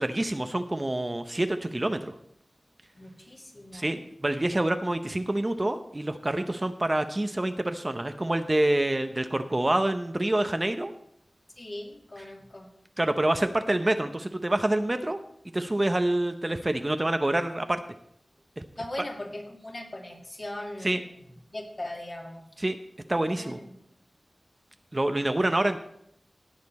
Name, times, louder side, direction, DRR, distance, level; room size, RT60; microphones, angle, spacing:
voice 1, 0.0-2.1 3.7-10.9 13.0-15.2 15.5-17.8 20.8-21.0 22.6-22.8 23.1-23.6 24.9-25.8, right 1 dB, 30° right, 8 dB, 0.7 m, -27 dB
voice 2, 2.9-4.0 11.6-12.7 18.8-21.2 21.5-22.4 23.3-23.7, left 1 dB, 40° left, 1 dB, 2.1 m, -39 dB
17.0 x 6.7 x 4.2 m, 0.73 s
wide cardioid pair, 60°, 0 cm